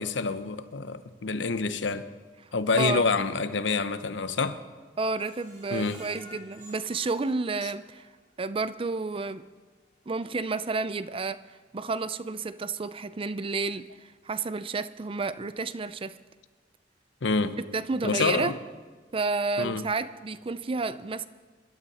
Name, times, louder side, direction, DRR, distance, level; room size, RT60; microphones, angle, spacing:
voice 1, 0.0-2.1 2.5-4.6 5.7-6.0 17.2-17.6 18.0-18.6 19.6-19.9, left 4 dB, 85° left, 0.8 m, -27 dB
voice 2, 2.8-3.1 5.0-8.1 8.4-9.4 10.1-11.4 11.7-16.2 17.7-18.5 19.1-21.3, right 3 dB, 30° right, 0.5 m, -31 dB
Screech, 5.2-8.2 8.6-8.7 9.1-9.2, equal, 50° right, 5.4 m, -51 dB
25.0 x 12.0 x 4.2 m
head